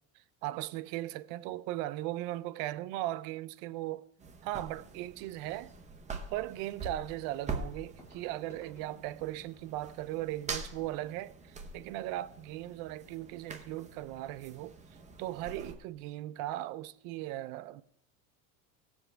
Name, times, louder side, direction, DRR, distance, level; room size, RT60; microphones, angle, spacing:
voice 1, 0.4-4.1 4.4-5.7 6.3-14.8 15.2-17.8, right 15 dB, 60° right, 0.5 m, -38 dB
sound 1, 4.2-15.7, right 4 dB, 15° right, 0.8 m, -44 dB
sound 2, 8.0-12.4 13.2-13.3 13.5-13.7 14.2-14.3, equal, 5° left, 2.0 m, -62 dB
17.0 x 7.2 x 3.3 m
supercardioid pair, 140°, 41 cm